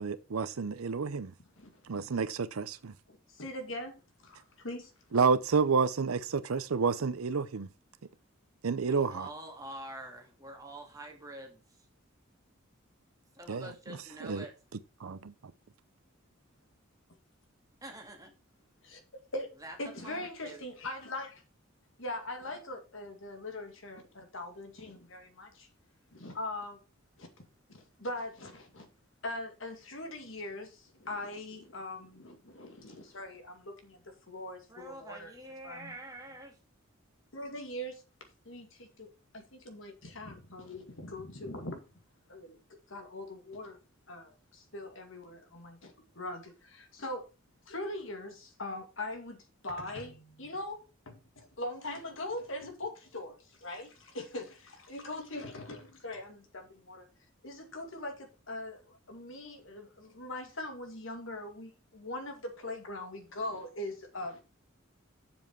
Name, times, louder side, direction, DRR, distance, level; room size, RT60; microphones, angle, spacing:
voice 1, 0.0-1.3 1.9-2.9 5.1-7.7 8.6-9.3 13.5-14.4 15.0-15.2, right 5 dB, 90° right, 0.6 m, -30 dB
voice 2, 3.1-4.0 4.2-4.9 18.8-19.0 19.3-19.5 19.8-21.4 22.0-25.7 26.1-26.8 27.2-27.3 27.7-28.9 29.2-35.3 35.6-35.9 37.3-38.0 38.4-41.8 42.3-42.6 42.9-43.8 44.1-47.3 47.7-57.1 57.4-64.4, left 1 dB, 65° left, 2.2 m, -41 dB
voice 3, 8.8-11.9 13.3-14.5 17.8-18.3 19.6-19.8 20.0-20.7 34.7-36.6, right 1 dB, 15° right, 2.2 m, -46 dB
7.6 x 7.2 x 4.6 m
head